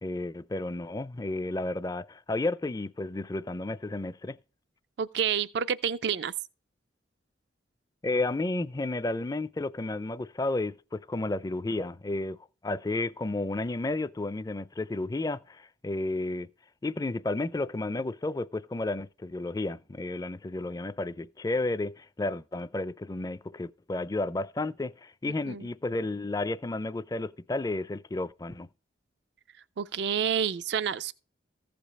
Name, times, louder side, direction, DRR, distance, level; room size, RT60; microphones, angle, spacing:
voice 1, 0.0-4.4 8.0-12.4 12.6-16.5 16.8-28.7, left 2 dB, 20° left, 0.4 m, -32 dB
voice 2, 5.0-6.3 25.5-25.7 29.8-31.1, right 7 dB, 60° right, 0.4 m, -29 dB
15.0 x 5.1 x 4.2 m
head